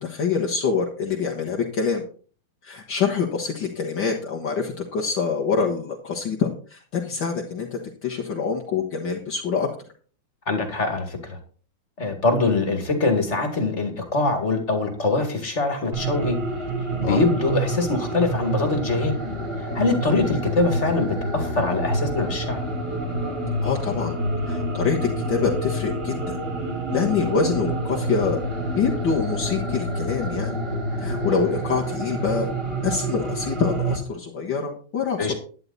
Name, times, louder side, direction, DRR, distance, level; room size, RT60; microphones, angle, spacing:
voice 1, 0.0-2.0 2.6-9.7 17.0-17.2 23.6-24.1 24.4-26.4 26.9-28.4 28.8-30.6 31.0-32.5 32.8-35.3, left 5 dB, 60° left, -1 dB, 2.2 m, -25 dB
voice 2, 10.5-11.4 12.0-16.4 17.0-19.2 19.6-22.6 35.2-35.3, left 3 dB, 35° left, 6 dB, 2.5 m, -23 dB
sound 1, 15.9-34.0, right 1 dB, 25° right, 3.3 m, -28 dB
11.0 x 11.0 x 4.1 m, 0.41 s
omnidirectional pair, 2.3 m